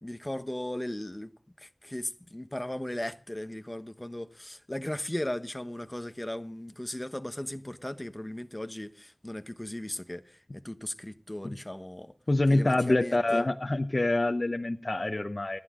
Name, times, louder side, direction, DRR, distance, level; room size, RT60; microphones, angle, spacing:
voice 1, 0.0-1.3 1.6-12.1 12.5-13.4, left 1 dB, 25° left, 1.1 m, -37 dB
voice 2, 12.3-15.6, left 2 dB, 55° left, 0.8 m, -26 dB
28.0 x 9.6 x 3.8 m
wide cardioid pair, 55°, 0 cm